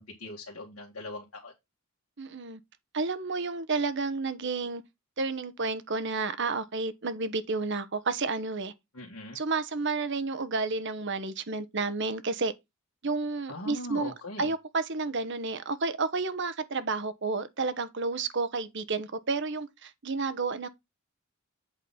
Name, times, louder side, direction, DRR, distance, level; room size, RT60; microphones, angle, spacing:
voice 1, 0.0-1.5 8.9-9.4 13.5-14.5, left 2 dB, 70° left, 2.0 m, -40 dB
voice 2, 2.2-2.6 2.9-4.8 5.2-8.7 9.3-12.5 13.0-20.7, right 3 dB, 55° right, 1.0 m, -31 dB
8.2 x 3.9 x 5.7 m
head